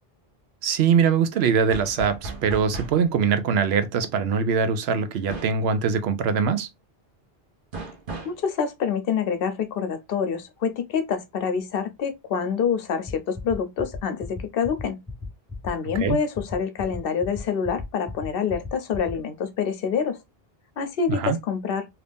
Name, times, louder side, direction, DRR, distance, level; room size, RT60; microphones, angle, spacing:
voice 1, 0.6-6.7 15.9-16.2 21.1-21.4, right 6 dB, 85° right, 0.9 m, -22 dB
sound 1, 1.7-3.1 5.3-5.6 7.7-8.4, right 3 dB, 60° right, 1.0 m, -36 dB
voice 2, 8.2-15.0 15.6-20.2 20.8-21.9, left 6 dB, 70° left, 0.8 m, -26 dB
sound 2, 13.1-19.1, left 4 dB, 15° left, 0.6 m, -36 dB
2.9 x 2.6 x 3.3 m
omnidirectional pair, 1.0 m